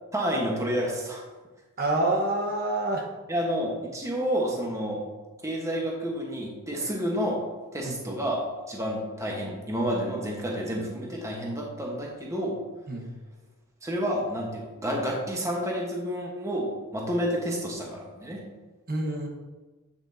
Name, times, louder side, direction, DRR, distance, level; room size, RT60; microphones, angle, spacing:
voice 1, 0.1-1.2 3.3-5.0 5.4-7.4 7.7-8.4 8.7-12.6 13.8-18.4, equal, 15° right, -1 dB, 1.2 m, -29 dB
voice 2, 1.8-3.1 7.8-8.0 12.9-13.1 18.9-19.3, right 2 dB, 45° right, 0 dB, 1.2 m, -27 dB
8.6 x 7.2 x 2.7 m, 1.2 s
head